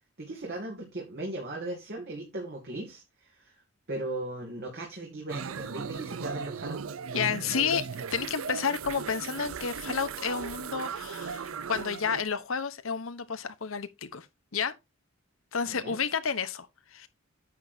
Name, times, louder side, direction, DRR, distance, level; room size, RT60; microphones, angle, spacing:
voice 1, 0.2-3.5 3.9-6.8 15.7-16.0, right 2 dB, 50° right, 2.4 m, -37 dB
sound 1, 5.3-12.2, right 6 dB, 80° right, 0.6 m, -37 dB
voice 2, 7.1-14.3 14.5-14.7 15.5-17.1, left 6 dB, 80° left, 1.0 m, -31 dB
9.4 x 8.3 x 2.7 m
head